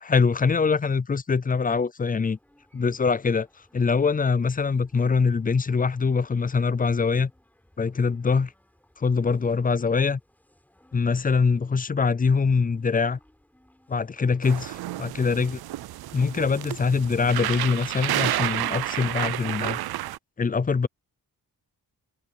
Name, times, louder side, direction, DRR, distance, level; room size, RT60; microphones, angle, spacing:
voice 1, 0.0-2.4 2.7-3.5 3.7-7.3 7.8-8.5 9.0-10.2 10.9-13.2 13.9-15.6 16.1-19.8 20.4-20.9, left 5 dB, 25° left, 0.5 m, -23 dB
sound 1, 2.3-19.6, left 1 dB, 5° left, 4.5 m, -62 dB
sound 2, 14.4-20.2, right 14 dB, 80° right, 0.5 m, -30 dB
wide cardioid pair, 155°, 37 cm